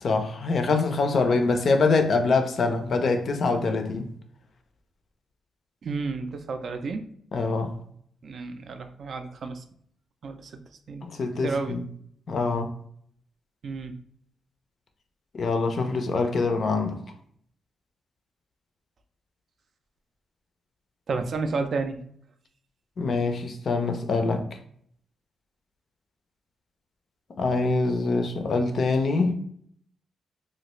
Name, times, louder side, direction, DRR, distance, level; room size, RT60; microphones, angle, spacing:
voice 1, 0.0-4.1 7.3-7.7 11.0-11.8 12.3-12.7 15.3-17.0 23.0-24.4 27.4-29.4, left 3 dB, 45° left, 0.4 m, -24 dB
voice 2, 5.8-7.0 8.2-9.6 10.2-10.5 10.9-11.0 11.4-11.8 13.6-13.9 21.1-22.0, right 4 dB, 50° right, 0.3 m, -31 dB
3.1 x 2.4 x 2.9 m
wide cardioid pair, 140°, 0 cm